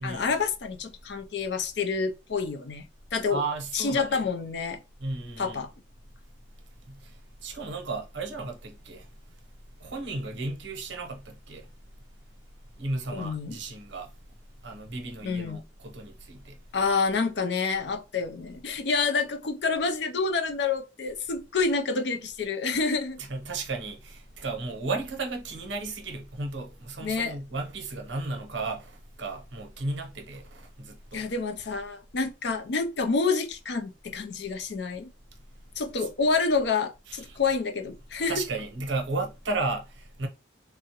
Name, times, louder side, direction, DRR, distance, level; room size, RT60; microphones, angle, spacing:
voice 1, 0.0-2.8 3.1-3.4 3.7-4.8 5.4-5.7 13.1-13.6 15.2-15.6 16.7-23.2 27.0-27.3 31.1-35.1 35.8-38.4, left 4 dB, 65° left, 0.5 m, -28 dB
voice 2, 3.3-4.2 5.0-5.6 6.9-9.1 9.8-11.7 12.8-14.1 14.6-16.6 23.2-31.3 37.1-37.4 38.3-40.3, right 3 dB, 75° right, 0.8 m, -34 dB
3.5 x 2.0 x 2.8 m
head